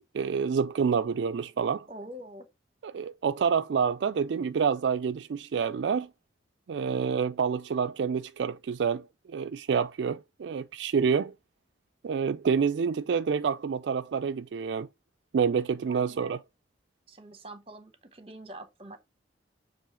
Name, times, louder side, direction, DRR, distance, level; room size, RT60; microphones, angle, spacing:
voice 1, 0.1-1.9 2.8-6.1 6.7-11.3 12.0-14.9 15.3-16.4, right 6 dB, 70° right, 0.3 m, -28 dB
voice 2, 1.9-2.5 15.9-16.4 17.1-19.0, right 1 dB, 30° right, 0.9 m, -45 dB
7.0 x 3.1 x 4.3 m
head